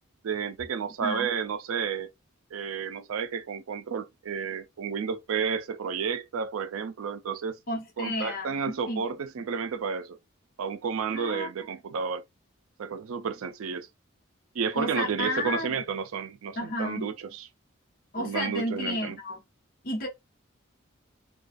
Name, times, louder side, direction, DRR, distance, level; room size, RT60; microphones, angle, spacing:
voice 1, 0.2-2.1 2.5-7.6 8.0-10.2 10.6-12.2 12.8-13.9 14.5-17.5 18.2-19.2, right 6 dB, 90° right, 0.4 m, -31 dB
voice 2, 7.7-9.1 11.1-11.5 14.7-15.7 16.6-17.1 18.1-19.4 19.8-20.1, left 1 dB, 45° left, 0.9 m, -32 dB
2.4 x 2.3 x 2.4 m
head